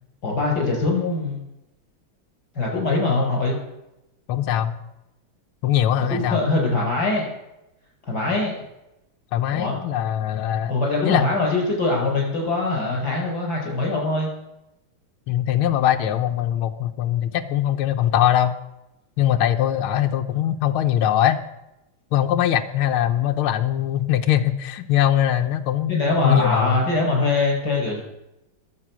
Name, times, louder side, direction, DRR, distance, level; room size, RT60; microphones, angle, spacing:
voice 1, 0.2-1.4 2.5-3.6 6.1-7.3 8.1-8.5 9.5-9.8 10.7-14.3 25.9-28.0, left 2 dB, 50° left, -1 dB, 6.7 m, -22 dB
voice 2, 4.3-4.7 5.6-6.4 9.3-10.7 11.0-11.3 15.3-18.5 19.2-21.4 22.1-26.8, left 11 dB, 90° left, 6 dB, 1.8 m, -21 dB
22.0 x 8.5 x 6.2 m, 0.89 s
omnidirectional pair, 2.3 m